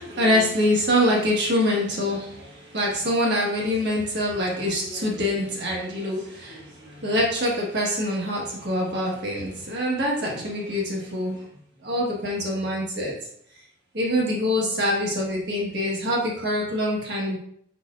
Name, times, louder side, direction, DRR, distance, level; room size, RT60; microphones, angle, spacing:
voice 1, 0.0-11.4 11.8-13.1 13.9-17.4, left 1 dB, 55° right, -3 dB, 1.5 m, -25 dB
5.1 x 4.1 x 2.5 m, 0.67 s
head